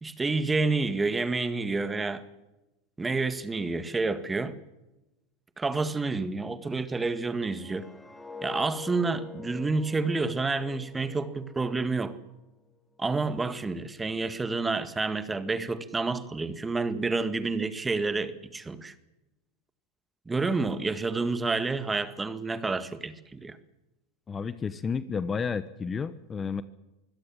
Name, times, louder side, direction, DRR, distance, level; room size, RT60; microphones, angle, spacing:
voice 1, 0.0-2.2 3.0-4.5 5.6-7.9 8.4-12.2 13.0-18.9 20.3-23.6, right 3 dB, 15° right, 12 dB, 1.9 m, -29 dB
sound 1, 7.3-12.3 12.7-13.0, left 6 dB, 10° left, 2.4 m, -45 dB
voice 2, 24.3-26.6, left 5 dB, 25° left, 15 dB, 1.1 m, -31 dB
24.5 x 17.0 x 7.4 m, 0.99 s
hypercardioid pair, 95°, 0 cm